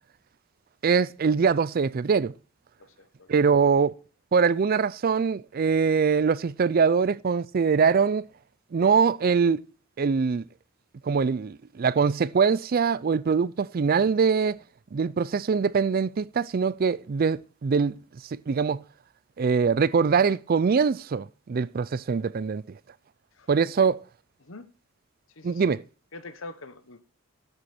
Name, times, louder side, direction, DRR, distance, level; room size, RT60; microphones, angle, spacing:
voice 1, 0.8-2.3 3.3-3.9 4.3-8.3 8.7-9.6 10.0-10.5 11.0-14.6 14.9-18.0 18.3-18.8 19.4-22.8 23.5-24.0 25.4-25.8, right 5 dB, 45° right, 0.4 m, -23 dB
voice 2, 2.8-3.5 23.4-23.5 23.8-23.9 24.4-24.7 25.4-25.8 26.1-27.0, left 2 dB, 65° left, 1.2 m, -44 dB
11.5 x 8.0 x 4.3 m
head